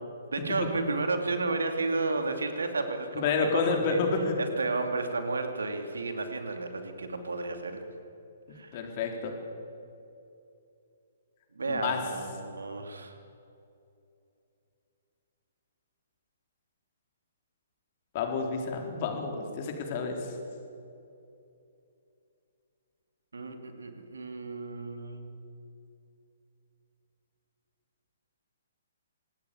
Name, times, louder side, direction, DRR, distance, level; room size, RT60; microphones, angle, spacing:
voice 1, 0.3-4.0 4.4-7.9 8.5-8.8 11.5-13.1 23.3-25.4, right 3 dB, 65° right, 6 dB, 2.7 m, -32 dB
voice 2, 3.2-4.4 8.7-9.3 11.7-12.0 18.1-20.2, left 4 dB, 35° left, 3 dB, 4.0 m, -29 dB
26.0 x 20.0 x 7.1 m, 2.7 s
figure-of-eight pair, 125°, 0 cm